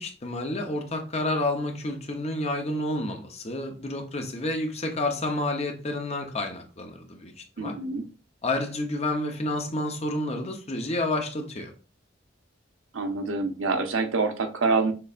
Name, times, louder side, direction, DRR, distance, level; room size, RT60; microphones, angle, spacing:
voice 1, 0.0-7.7 8.4-11.7, left 2 dB, 35° left, 0.8 m, -30 dB
voice 2, 7.6-8.1 12.9-14.9, right 3 dB, 90° right, 0.8 m, -26 dB
6.7 x 3.2 x 2.5 m
head